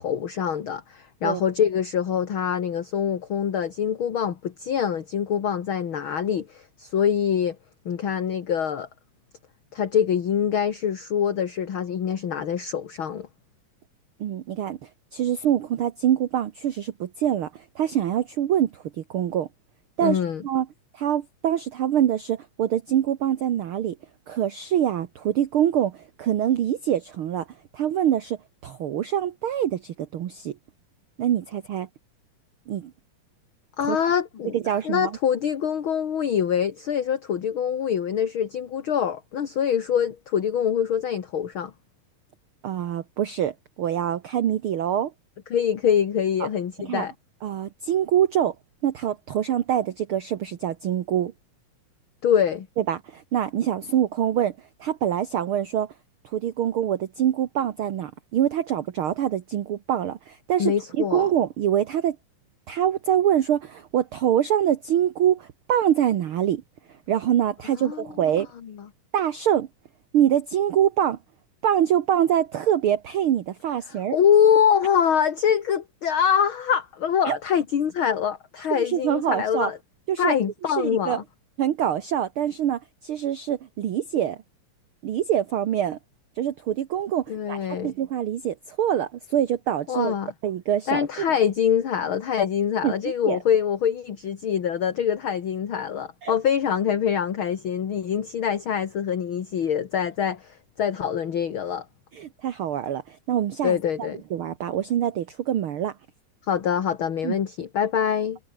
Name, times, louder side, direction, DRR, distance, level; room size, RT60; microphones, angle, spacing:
voice 1, 0.0-7.6 7.9-8.9 9.7-13.3 20.0-20.4 33.8-41.7 45.5-47.1 52.2-52.7 60.6-61.3 67.8-68.1 68.6-68.7 73.9-79.8 80.2-81.2 87.3-87.9 89.9-90.3 90.9-101.9 103.6-104.2 106.5-108.4, left 8 dB, 45° left, 2.2 m, -24 dB
voice 2, 14.2-19.5 20.0-20.7 20.9-24.0 24.3-27.4 27.7-28.4 28.6-30.5 31.2-31.9 32.7-32.9 33.8-34.0 34.5-35.1 42.6-45.1 46.4-46.5 46.8-47.1 47.4-48.5 48.8-51.3 52.8-54.5 54.8-55.9 56.3-62.2 62.7-66.6 67.1-68.5 69.1-69.7 70.1-71.2 71.6-74.2 77.2-77.4 78.7-79.7 80.1-80.4 80.8-81.2 81.6-84.4 85.0-86.0 86.4-90.1 90.4-91.1 92.8-92.9 93.3-93.4 96.2-96.3 102.1-105.9 107.2-107.3, right 10 dB, 60° right, 1.6 m, -25 dB
omnidirectional pair, 3.5 m